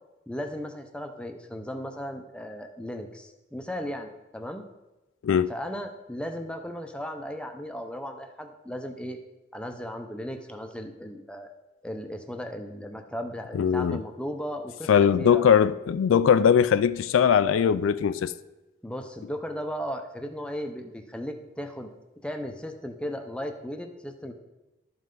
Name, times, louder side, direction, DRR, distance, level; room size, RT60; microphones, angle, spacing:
voice 1, 0.3-4.6 5.5-9.2 9.5-11.5 11.8-15.5 18.8-21.9 22.2-24.3, equal, 5° left, 0.6 m, -36 dB
voice 2, 13.5-14.0 14.9-18.3, left 7 dB, 85° left, 0.3 m, -20 dB
12.0 x 5.4 x 3.8 m
head